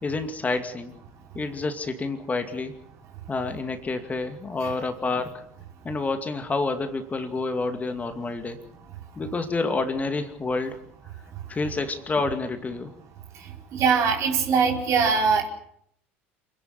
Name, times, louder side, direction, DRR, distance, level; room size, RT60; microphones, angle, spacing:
voice 1, 0.0-1.0 1.3-2.7 3.3-5.5 5.8-8.6 9.2-10.8 11.5-12.9, left 3 dB, 25° left, 7 dB, 2.5 m, -28 dB
voice 2, 13.7-15.5, right 5 dB, 50° right, 2 dB, 4.8 m, -21 dB
27.5 x 11.0 x 10.0 m, 0.71 s
figure-of-eight pair, 70°, 7 cm